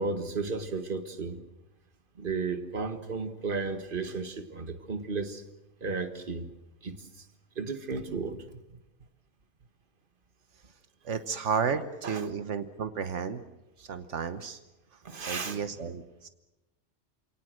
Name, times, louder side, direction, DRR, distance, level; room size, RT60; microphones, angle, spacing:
voice 1, 0.0-1.4 2.2-5.4 5.8-6.5 6.8-7.3 7.6-8.5 12.0-12.2 15.0-15.6, right 4 dB, 45° right, 9 dB, 1.8 m, -34 dB
voice 2, 11.0-13.4 13.8-14.6 15.3-16.3, right 6 dB, 85° right, 10 dB, 1.4 m, -32 dB
28.5 x 18.5 x 7.7 m, 1.0 s
omnidirectional pair, 1.2 m